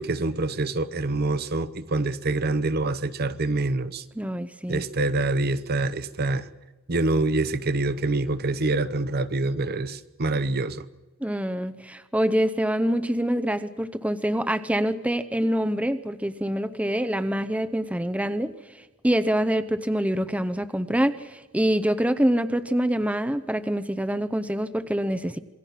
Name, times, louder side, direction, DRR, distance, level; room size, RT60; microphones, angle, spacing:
voice 1, 0.0-4.0 4.7-6.5 6.9-10.8, right 2 dB, 50° right, 13 dB, 0.8 m, -26 dB
voice 2, 4.2-4.8 11.2-18.5 19.0-25.4, equal, 5° right, 11 dB, 0.7 m, -25 dB
27.0 x 21.5 x 5.8 m, 1.1 s
head